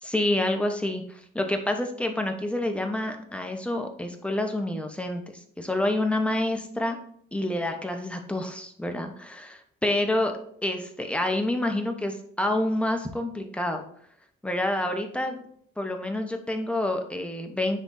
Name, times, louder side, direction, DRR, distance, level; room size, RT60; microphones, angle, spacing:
voice 1, 0.0-7.0 7.3-13.8 14.4-15.4 15.8-17.8, left 1 dB, 5° left, 4 dB, 1.0 m, -28 dB
9.9 x 3.5 x 2.7 m, 0.62 s
cardioid pair, 90°, 20 cm